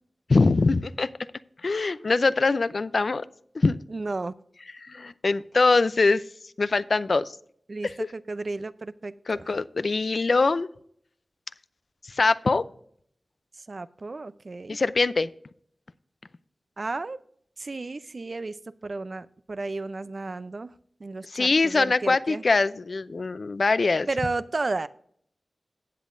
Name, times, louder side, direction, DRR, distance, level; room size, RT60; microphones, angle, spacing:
voice 1, 0.3-1.1 1.6-3.2 3.5-3.8 4.8-6.2 6.6-7.4 7.8-7.9 9.3-10.7 12.0-12.6 14.7-15.3 21.3-24.1, left 3 dB, 65° left, 15 dB, 0.4 m, -23 dB
voice 2, 3.9-4.3 7.7-9.5 13.6-14.8 16.8-17.2 17.6-18.6 18.8-20.7 21.0-22.4 24.1-24.9, right 3 dB, 55° right, 14 dB, 0.5 m, -33 dB
15.0 x 8.2 x 2.6 m, 0.65 s
cardioid pair, 55°, 0 cm